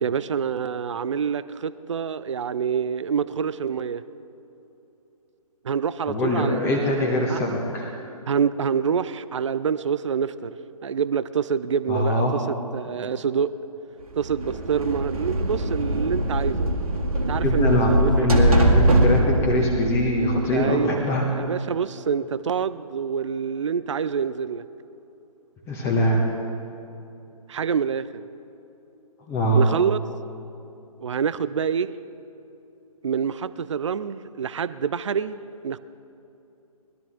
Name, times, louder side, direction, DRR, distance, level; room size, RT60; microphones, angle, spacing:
voice 1, 0.0-4.0 5.6-7.0 7.3-7.4 8.3-10.6 10.8-13.5 14.2-16.7 17.3-18.3 20.5-24.6 27.5-28.1 29.5-30.0 31.0-31.9 33.0-35.8, right 7 dB, 50° right, 15 dB, 0.4 m, -26 dB
voice 2, 6.1-7.9 11.9-12.3 17.3-21.2 25.7-26.3 29.3-29.7, left 1 dB, 15° left, 0 dB, 1.3 m, -23 dB
sound 1, 14.2-20.9, right 1 dB, 70° right, 1.9 m, -22 dB
21.0 x 12.5 x 3.7 m, 2.9 s
figure-of-eight pair, 140°, 19 cm